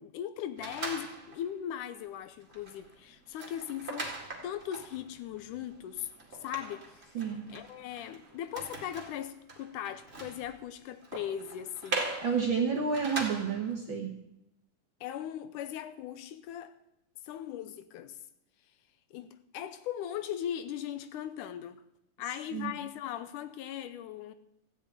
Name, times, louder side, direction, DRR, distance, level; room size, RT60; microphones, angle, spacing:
voice 1, 0.0-4.1 4.4-6.1 6.4-12.1 15.0-16.7 17.2-18.2 19.1-21.8 22.2-24.3, left 10 dB, 80° left, 2.1 m, -39 dB
sound 1, 0.6-1.5 2.0-2.1 2.4-13.7, right 2 dB, 20° right, 1.9 m, -41 dB
voice 2, 7.1-7.4 12.2-14.1 22.5-22.7, right 6 dB, 55° right, 1.4 m, -30 dB
15.0 x 7.2 x 9.2 m
omnidirectional pair, 3.8 m